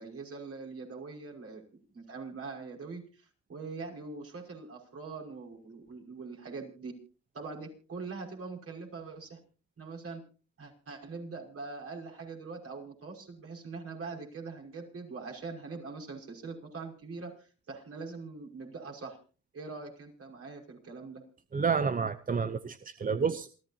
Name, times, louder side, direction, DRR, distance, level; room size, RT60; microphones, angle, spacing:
voice 1, 0.0-6.9 7.3-9.4 9.8-10.2 10.6-19.2 19.5-21.2, right 4 dB, 50° right, 1 dB, 5.7 m, -43 dB
voice 2, 21.5-23.5, right 5 dB, 30° right, 11 dB, 0.7 m, -29 dB
27.5 x 13.5 x 2.8 m, 0.38 s
cardioid pair, 90°, 30 cm